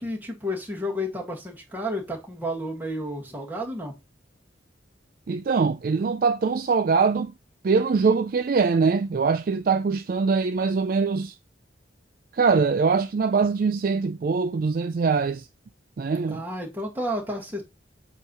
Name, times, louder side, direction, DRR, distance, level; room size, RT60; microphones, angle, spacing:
voice 1, 0.0-3.9 16.3-17.6, equal, 10° right, 1.7 m, -31 dB
voice 2, 5.3-7.3 7.6-11.4 12.3-15.5 16.0-16.4, right 5 dB, 50° right, 0.4 m, -23 dB
8.1 x 3.0 x 5.4 m
head